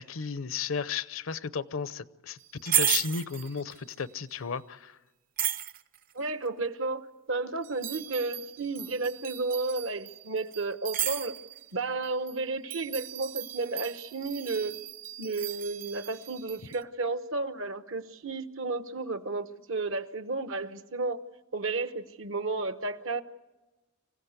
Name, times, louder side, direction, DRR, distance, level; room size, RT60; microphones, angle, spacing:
voice 1, 0.0-5.0, left 6 dB, 65° left, 15 dB, 0.7 m, -34 dB
sound 1, 2.4-3.9 5.4-6.1 7.6-11.7 12.0-12.4 12.7-16.8, right 10 dB, 40° right, 0.7 m, -34 dB
voice 2, 6.1-11.3 11.7-14.7 15.2-21.2 21.5-23.2, right 3 dB, 65° right, 11 dB, 1.1 m, -32 dB
25.5 x 16.0 x 8.1 m, 1.1 s
head